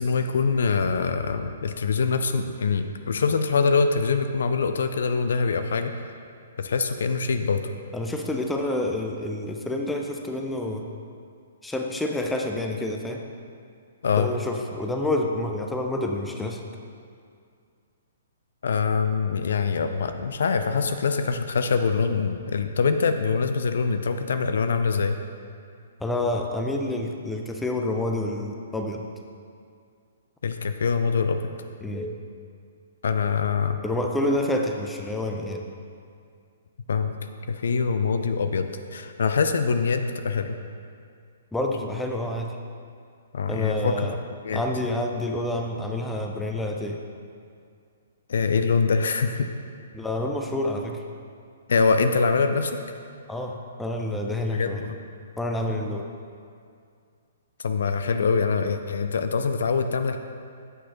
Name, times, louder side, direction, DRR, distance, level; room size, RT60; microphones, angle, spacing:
voice 1, 0.0-5.9 6.6-7.7 14.0-14.3 18.6-25.2 30.4-31.4 33.0-33.8 36.9-37.1 37.5-40.6 43.3-43.9 44.4-44.6 48.3-49.5 51.7-52.8 54.5-55.0 57.6-60.2, left 5 dB, 60° left, 8 dB, 0.3 m, -24 dB
voice 2, 7.9-10.8 11.6-13.3 14.2-16.6 26.0-29.0 31.8-32.2 33.8-35.7 41.5-42.6 43.5-44.2 44.5-47.0 49.9-51.0 53.3-54.8 55.4-56.1, left 1 dB, 5° left, 2 dB, 0.5 m, -28 dB
8.0 x 6.0 x 3.0 m, 2.3 s
figure-of-eight pair, 120°, 0 cm